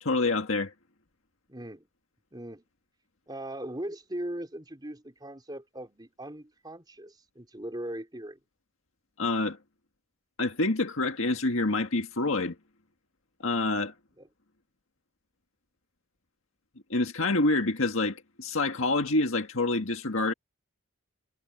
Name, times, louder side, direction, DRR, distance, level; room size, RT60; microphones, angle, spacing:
voice 1, 0.0-0.7 9.2-9.6 10.4-12.6 13.4-13.9 16.9-20.3, left 2 dB, 65° left, 1.9 m, -27 dB
voice 2, 1.5-1.9 2.3-2.6 3.3-8.4 14.2-14.3, right 1 dB, 20° right, 3.9 m, -39 dB
head